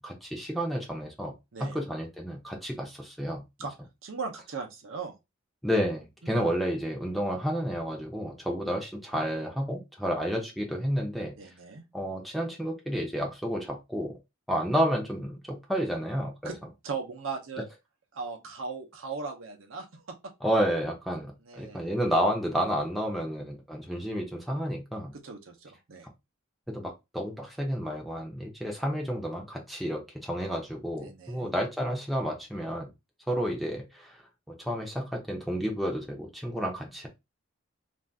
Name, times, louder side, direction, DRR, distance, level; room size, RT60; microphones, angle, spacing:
voice 1, 0.0-1.3 1.6-3.4 5.6-11.3 11.9-14.2 14.5-16.5 20.4-25.1 26.7-32.9 33.3-34.2 34.6-37.1, equal, ahead, 0.6 m, -31 dB
voice 2, 1.5-1.8 3.6-3.7 4.0-5.2 6.2-6.5 11.4-11.8 16.4-16.6 16.8-17.7 18.1-20.3 21.5-21.8 25.1-26.1 31.0-31.5, right 4 dB, 70° right, 0.7 m, -38 dB
2.6 x 2.3 x 3.4 m
head